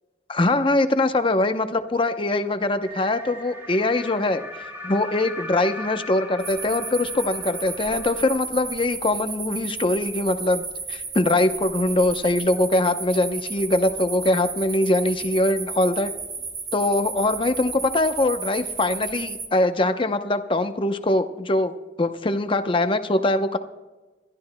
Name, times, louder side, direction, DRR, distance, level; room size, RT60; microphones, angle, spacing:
voice 1, 0.3-10.6 10.9-16.1 16.7-21.7 22.0-23.6, left 2 dB, 30° left, 9 dB, 0.7 m, -22 dB
sound 1, 2.8-8.4, left 1 dB, 15° right, 2.7 m, -39 dB
sound 2, 6.4-19.5, right 4 dB, 40° right, 2.0 m, -33 dB
27.0 x 13.0 x 2.2 m, 1.2 s
head